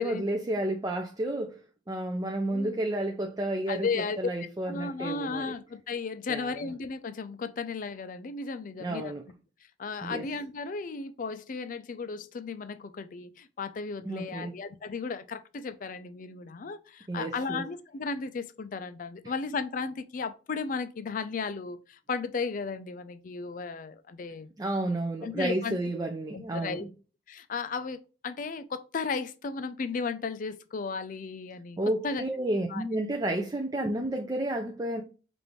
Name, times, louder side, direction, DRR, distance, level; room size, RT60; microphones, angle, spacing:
voice 1, 0.0-1.6 1.9-5.5 6.3-6.6 8.8-9.2 10.0-10.3 14.0-14.5 17.1-17.6 24.6-26.9 31.8-35.0, right 1 dB, 20° right, 0.4 m, -31 dB
voice 2, 2.5-3.1 3.7-4.2 4.7-9.1 9.8-24.5 25.2-25.8 26.3-26.8 27.3-31.8 32.0-32.2 32.7-32.8 33.8-33.9, left 4 dB, 45° left, 0.4 m, -35 dB
5.0 x 2.5 x 3.0 m
head